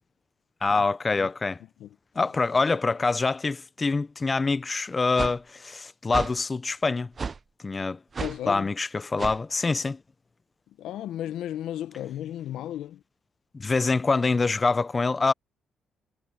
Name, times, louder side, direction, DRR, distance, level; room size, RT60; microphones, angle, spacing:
voice 1, 0.6-1.6 2.2-7.1 7.6-8.0 8.5-10.0 13.5-15.3, left 3 dB, 25° left, 0.5 m, -25 dB
sound 1, 5.2-5.4 6.1-6.3 7.2-7.4 8.1-8.4 9.2-9.4, right 5 dB, 35° right, 0.4 m, -32 dB
voice 2, 8.2-8.7 10.8-13.0, left 11 dB, 85° left, 0.7 m, -34 dB
cardioid pair, 90°, 0 cm